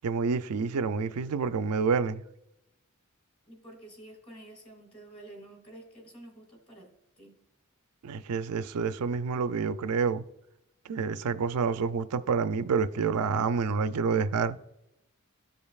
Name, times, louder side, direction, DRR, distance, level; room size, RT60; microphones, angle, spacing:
voice 1, 0.0-2.2 8.0-10.2 10.9-14.6, right 5 dB, 85° right, 0.4 m, -28 dB
voice 2, 3.5-6.9 7.2-7.4, right 1 dB, 25° left, 2.0 m, -49 dB
14.0 x 5.2 x 2.4 m
head